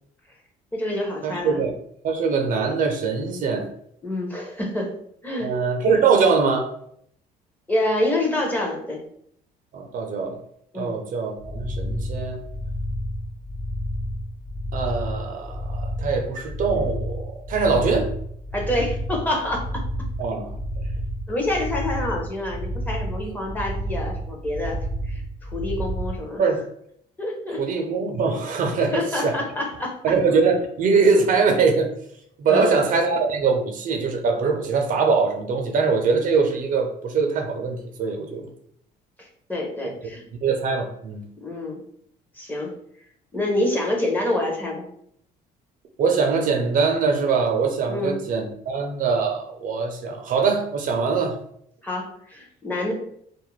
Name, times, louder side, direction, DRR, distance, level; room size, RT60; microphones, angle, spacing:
voice 1, 0.7-1.6 4.0-4.9 5.2-5.5 7.7-9.0 10.7-11.0 18.5-20.1 21.3-24.8 25.0-26.4 27.2-27.6 28.9-30.0 32.5-32.8 39.2-40.2 41.4-41.8 42.3-42.7 43.3-44.8 47.9-48.2 51.8-52.9, left 1 dB, 10° left, -1 dB, 0.6 m, -27 dB
voice 2, 1.2-1.8 2.0-3.7 5.4-6.7 9.7-10.4 10.7-12.4 14.7-18.1 20.2-20.5 26.4-26.6 27.6-29.3 30.0-31.9 32.4-38.5 39.8-39.9 40.4-41.2 46.0-51.4, right 5 dB, 55° right, 4 dB, 0.5 m, -22 dB
sound 1, 11.4-26.2, equal, 45° left, 1.0 m, -30 dB
2.3 x 2.1 x 3.0 m, 0.68 s
cardioid pair, 110°, 17 cm